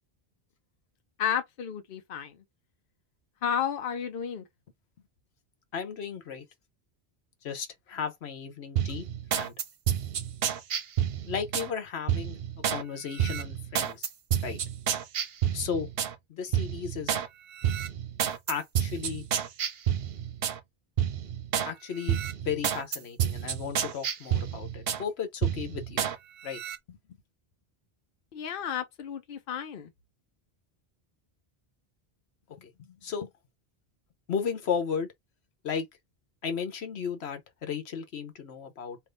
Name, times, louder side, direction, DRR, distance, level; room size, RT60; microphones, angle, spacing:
voice 1, 1.2-2.4 3.4-4.4 28.3-29.9, left 9 dB, 60° left, 0.9 m, -32 dB
voice 2, 5.7-6.5 7.4-9.1 9.3-9.5 11.3-12.4 12.7-14.1 14.4-14.6 15.5-15.9 16.3-17.2 18.5-19.2 21.6-26.1 26.4-26.6 26.9-27.0 32.6-33.3 34.3-35.1 35.6-35.9 36.4-39.0, left 7 dB, 90° left, 1.2 m, -34 dB
sound 1, 8.8-11.7 12.1-12.8 13.2-16.2 16.5-17.3 17.6-20.6 21.0-21.7 22.1-25.0 25.4-26.2 26.5-26.8, right 9 dB, 70° right, 0.9 m, -29 dB
3.4 x 2.6 x 3.8 m
omnidirectional pair, 1.1 m